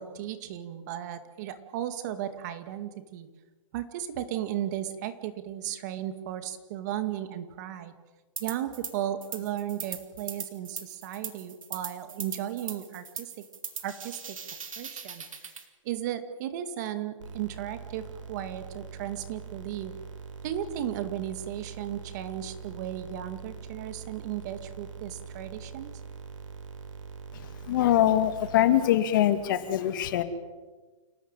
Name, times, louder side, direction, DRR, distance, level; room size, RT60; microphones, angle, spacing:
voice 1, 0.0-3.3 3.7-7.9 8.4-13.3 13.8-14.4 14.8-15.5 15.8-19.9 20.4-26.0, right 11 dB, 35° right, 10 dB, 2.2 m, -35 dB
sound 1, 8.4-8.9 9.2-15.6, right 6 dB, 90° right, 4.6 m, -39 dB
sound 2, 17.2-28.7, right 6 dB, 70° right, 5.4 m, -43 dB
voice 2, 27.3-30.2, left 12 dB, 40° left, 10 dB, 2.4 m, -24 dB
28.5 x 18.5 x 9.1 m, 1.3 s
hypercardioid pair, 165°, 17 cm